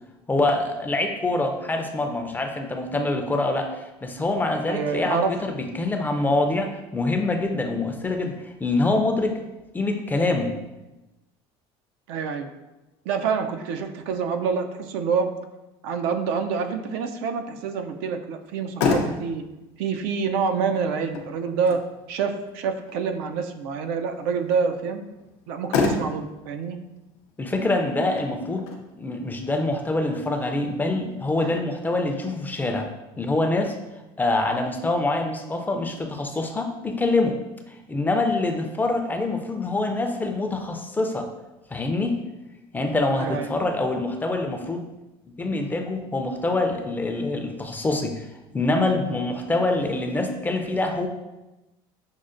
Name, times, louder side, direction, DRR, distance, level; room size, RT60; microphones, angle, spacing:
voice 1, 0.3-8.3 8.6-9.4 9.7-10.6 27.4-28.7 29.0-32.9 33.2-33.7 34.2-37.4 37.9-41.3 41.7-42.2 42.7-44.8 45.4-48.3 48.5-51.1, left 2 dB, 15° left, 5 dB, 0.4 m, -25 dB
voice 2, 4.7-5.4 12.1-12.5 13.1-15.3 15.8-19.4 19.8-21.8 22.1-25.0 25.5-26.8 31.4-31.5 43.1-43.5, right 5 dB, 80° right, 6 dB, 0.4 m, -27 dB
Motor vehicle (road), 18.4-31.4, left 4 dB, 80° left, 0.5 m, -32 dB
6.2 x 2.1 x 2.5 m, 1.0 s
supercardioid pair, 110°, 13 cm